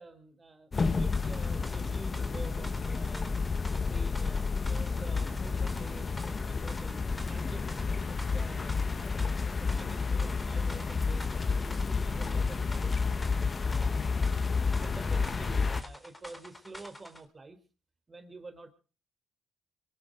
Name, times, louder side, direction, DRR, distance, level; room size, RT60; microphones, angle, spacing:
voice 1, 0.0-3.4 3.7-7.6 8.1-8.8 9.2-13.0 13.6-14.1 14.8-17.6 18.1-18.7, right 3 dB, 25° right, 8 dB, 3.6 m, -48 dB
sound 1, 0.7-15.8, left 4 dB, 35° left, 1.4 m, -30 dB
sound 2, 1.1-17.2, left 1 dB, 15° left, 3.9 m, -48 dB
24.5 x 11.5 x 5.2 m, 0.38 s
cardioid pair, 90°, 0 cm